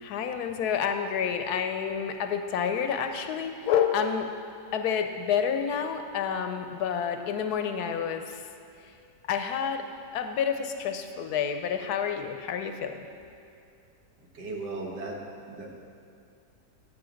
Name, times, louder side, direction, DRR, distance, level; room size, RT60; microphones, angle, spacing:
voice 1, 0.0-4.3 4.7-8.4 9.3-9.8 10.1-13.0, left 7 dB, 75° left, 7 dB, 1.1 m, -29 dB
voice 2, 14.4-15.2 15.5-15.8, right 2 dB, 80° right, 0 dB, 1.8 m, -36 dB
10.5 x 8.5 x 3.9 m, 2.5 s
omnidirectional pair, 1.8 m